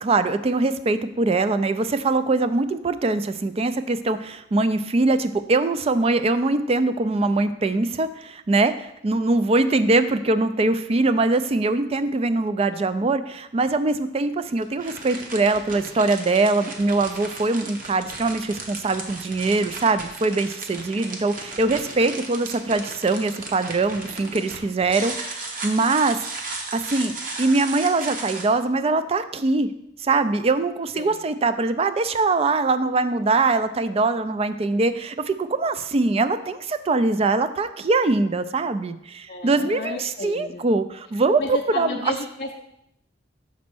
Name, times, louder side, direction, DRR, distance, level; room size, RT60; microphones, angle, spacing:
voice 1, 0.0-26.2 26.7-29.7 30.0-42.1, right 3 dB, 30° right, 11 dB, 0.4 m, -22 dB
sound 1, 13.6-13.7 14.5-28.5, right 3 dB, 50° right, 1.0 m, -35 dB
voice 2, 39.3-40.7 41.4-42.6, left 2 dB, 50° left, 2 dB, 0.5 m, -32 dB
6.2 x 4.2 x 6.0 m, 0.81 s
head